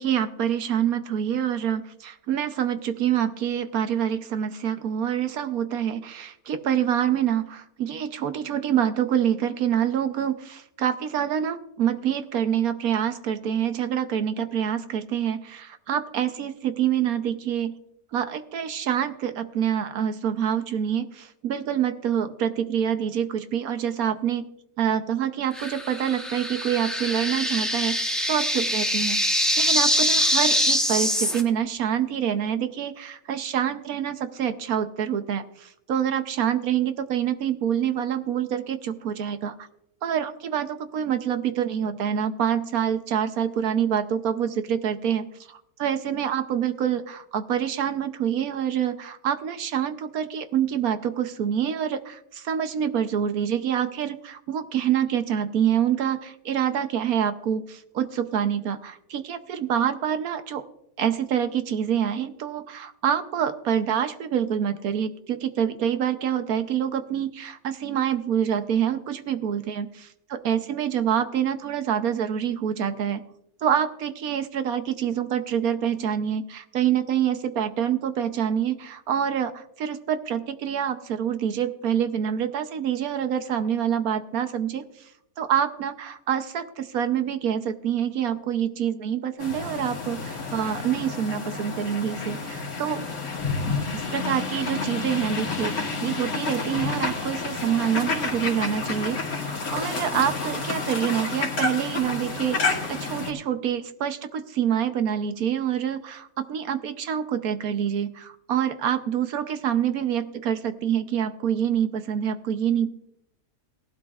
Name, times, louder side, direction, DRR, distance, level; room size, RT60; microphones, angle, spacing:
voice 1, 0.0-17.7 18.1-24.5 24.8-28.0 28.3-39.5 40.0-60.6 61.0-73.2 73.6-84.8 85.4-93.0 93.9-102.6 102.9-112.9, right 9 dB, 70° right, 9 dB, 1.2 m, -26 dB
sound 1, 25.5-31.4, equal, ahead, 1.0 m, -24 dB
sound 2, 89.4-103.3, left 4 dB, 65° left, 2.3 m, -30 dB
18.0 x 12.0 x 2.4 m, 0.77 s
omnidirectional pair, 1.6 m